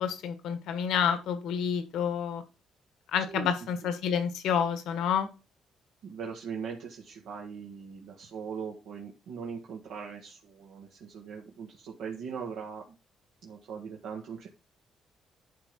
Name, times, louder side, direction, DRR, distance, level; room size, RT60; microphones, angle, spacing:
voice 1, 0.0-2.4 3.1-5.3, left 7 dB, 85° left, 9 dB, 1.5 m, -29 dB
voice 2, 3.1-3.5 6.0-12.9 13.4-14.5, right 6 dB, 85° right, -1 dB, 1.7 m, -40 dB
11.5 x 3.8 x 5.9 m, 0.31 s
cardioid pair, 90°, 0 cm